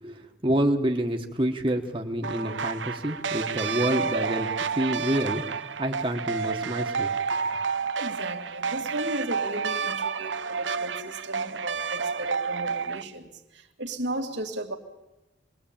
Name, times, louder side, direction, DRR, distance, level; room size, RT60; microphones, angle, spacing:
voice 1, 0.0-7.1, right 1 dB, 30° right, 2 dB, 1.5 m, -28 dB
sound 1, 2.2-13.0, right 5 dB, 90° right, 0.9 m, -30 dB
voice 2, 8.0-14.8, right 1 dB, 75° right, 3 dB, 2.3 m, -35 dB
26.5 x 20.0 x 8.9 m, 1.0 s
head